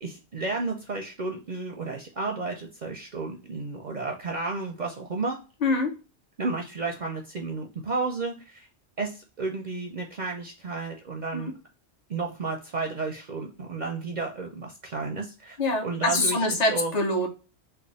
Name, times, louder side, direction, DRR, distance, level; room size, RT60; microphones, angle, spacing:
voice 1, 0.0-5.4 6.4-8.7 9.0-11.5 12.1-16.9, right 3 dB, 50° right, 2 dB, 0.6 m, -32 dB
voice 2, 5.6-5.9 11.3-11.5 15.6-17.3, left 2 dB, 45° left, 4 dB, 0.8 m, -25 dB
3.3 x 2.3 x 3.9 m, 0.33 s
omnidirectional pair, 1.1 m